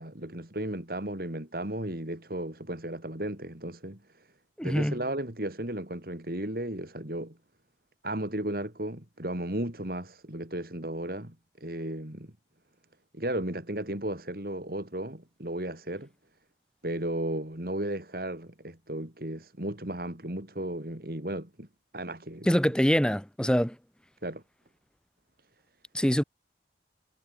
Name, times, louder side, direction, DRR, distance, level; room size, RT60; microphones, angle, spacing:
voice 1, 0.0-4.3 4.6-7.4 8.0-12.3 13.1-16.1 16.8-21.7 21.9-22.5 24.2-24.4, right 1 dB, 55° right, 3.4 m, -35 dB
voice 2, 4.6-5.0 22.5-23.7 25.9-26.2, equal, 5° left, 1.3 m, -24 dB
head